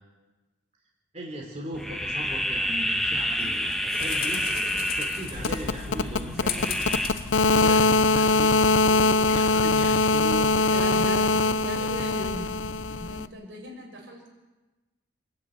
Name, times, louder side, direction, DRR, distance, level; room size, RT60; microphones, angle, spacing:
voice 1, 1.1-4.5 4.8-6.8 7.5-11.0 11.3-12.4, right 1 dB, 40° right, -1 dB, 3.4 m, -38 dB
sound 1, 1.7-7.1, equal, ahead, 1.3 m, -29 dB
sound 2, 3.4-8.4, left 7 dB, 50° left, 2.7 m, -38 dB
sound 3, 5.4-13.3, left 3 dB, 90° left, 0.8 m, -22 dB
voice 2, 10.7-11.3 11.6-12.5 13.0-14.3, equal, 75° right, 0 dB, 6.8 m, -37 dB
27.0 x 10.5 x 9.4 m, 1.2 s
head